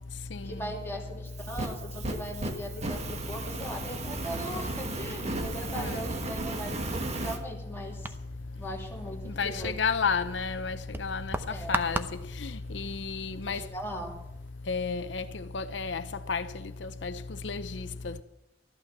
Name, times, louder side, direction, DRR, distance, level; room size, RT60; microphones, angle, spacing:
voice 1, 0.4-8.1 8.6-9.7 11.5-11.8 13.5-14.1, right 1 dB, 15° left, 2.9 m, -39 dB
Fire, 1.3-7.4, right 2 dB, 35° right, 1.5 m, -35 dB
sound 1, 7.9-14.5, right 1 dB, 10° right, 0.7 m, -39 dB
voice 2, 9.4-11.3 11.7-12.0 12.4-13.6 14.7-15.2 15.5-16.0 16.3-16.4 16.8-17.1 17.4-18.2, left 5 dB, 75° left, 0.7 m, -31 dB
14.0 x 12.0 x 6.0 m
head